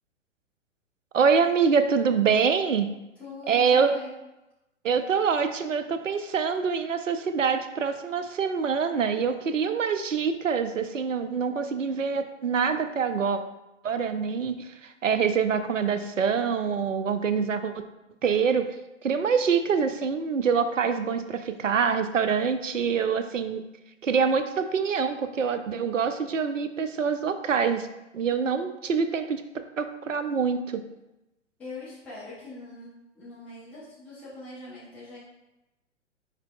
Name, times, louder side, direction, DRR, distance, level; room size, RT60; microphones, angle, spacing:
voice 1, 1.1-2.9 3.5-3.9 4.8-13.4 13.8-17.8 18.2-18.7 19.0-23.6 24.0-27.9 28.1-30.8, right 6 dB, 85° right, 9 dB, 0.5 m, -25 dB
voice 2, 3.2-4.1 31.6-35.2, left 2 dB, 5° left, -10 dB, 0.4 m, -42 dB
4.9 x 4.5 x 2.2 m, 0.97 s
figure-of-eight pair, 110°, 37 cm